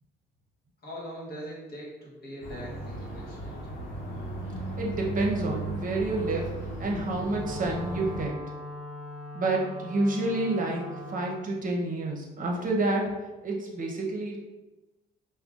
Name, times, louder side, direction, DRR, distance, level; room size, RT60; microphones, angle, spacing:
voice 1, 0.8-3.7, equal, 50° left, -4 dB, 1.4 m, -41 dB
sound 1, 2.4-8.2, right 2 dB, 75° left, 0.9 m, -36 dB
voice 2, 4.8-6.5 6.8-8.4 9.3-13.1 13.4-14.4, right 2 dB, 45° right, 0 dB, 0.8 m, -29 dB
Wind instrument woodwind instrument, 7.0-11.5, left 1 dB, 5° right, 0.6 m, -41 dB
5.2 x 2.2 x 2.5 m, 1.1 s
cardioid pair, 90°, 20 cm